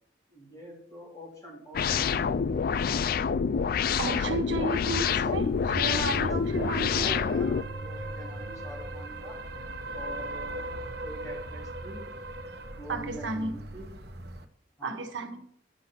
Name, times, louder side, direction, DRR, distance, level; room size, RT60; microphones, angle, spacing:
voice 1, 0.3-2.1 6.2-9.4 9.9-10.6 11.0-12.0 12.8-13.9 14.8-15.0, right 1 dB, 20° left, -3 dB, 3.9 m, -45 dB
sound 1, 1.7-7.6, left 6 dB, 55° left, 0.3 m, -27 dB
voice 2, 4.0-7.2 12.9-13.6 14.8-15.4, right 2 dB, 90° right, 6 dB, 1.3 m, -33 dB
sound 2, 4.8-14.4, right 1 dB, 60° right, 1.0 m, -39 dB
11.0 x 6.0 x 6.1 m, 0.65 s
head